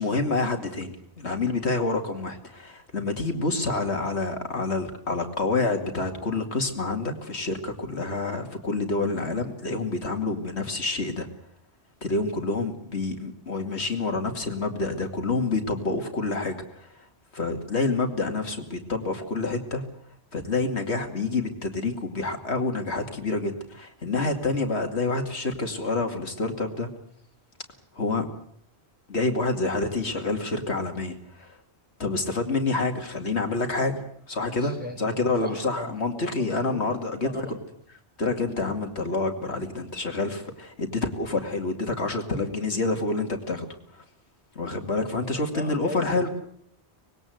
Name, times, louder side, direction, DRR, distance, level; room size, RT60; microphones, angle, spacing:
voice 1, 0.0-11.3 12.0-17.0 17.3-19.8 20.3-26.9 28.0-28.3 29.1-31.6 32.0-37.5 38.2-43.7 43.9-44.0 44.6-46.3, left 3 dB, 85° left, 4 dB, 2.7 m, -28 dB
voice 2, 34.6-36.9 37.2-37.6 45.1-46.3, equal, 10° right, 2 dB, 4.7 m, -39 dB
25.0 x 20.5 x 7.9 m, 0.69 s
omnidirectional pair, 1.1 m